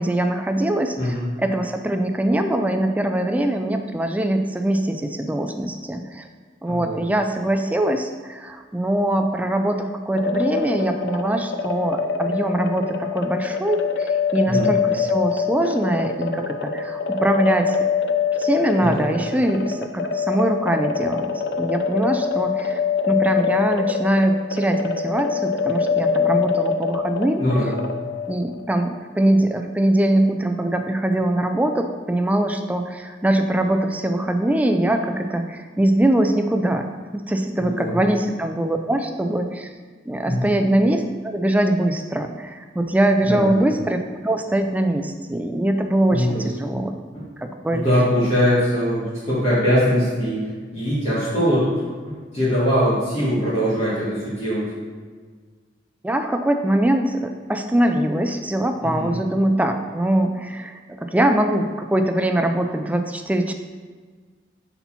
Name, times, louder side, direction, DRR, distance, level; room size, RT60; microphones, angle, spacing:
voice 1, 0.0-6.3 6.6-17.8 18.4-21.3 21.6-22.8 23.1-27.4 28.3-36.9 37.1-39.7 40.1-46.9 47.4-47.8 56.0-63.5, right 1 dB, 10° right, 6 dB, 0.3 m, -22 dB
voice 2, 6.7-7.0 14.5-14.7 18.8-19.0 27.4-27.7 37.6-38.0 40.3-40.4 43.2-43.5 46.1-46.4 47.7-51.7 52.3-54.6 58.8-59.1, equal, 40° left, -11 dB, 1.7 m, -21 dB
sound 1, 10.1-28.6, left 6 dB, 90° left, 0.4 m, -24 dB
4.2 x 4.2 x 5.6 m, 1.5 s
head